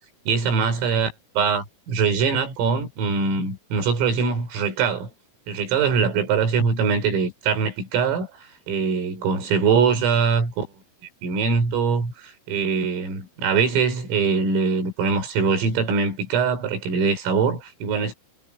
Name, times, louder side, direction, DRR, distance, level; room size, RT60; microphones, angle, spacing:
voice 1, 0.3-5.1 5.5-8.3 8.7-10.7 11.2-18.1, right 5 dB, 80° right, 8.1 m, -22 dB
omnidirectional pair, 5.9 m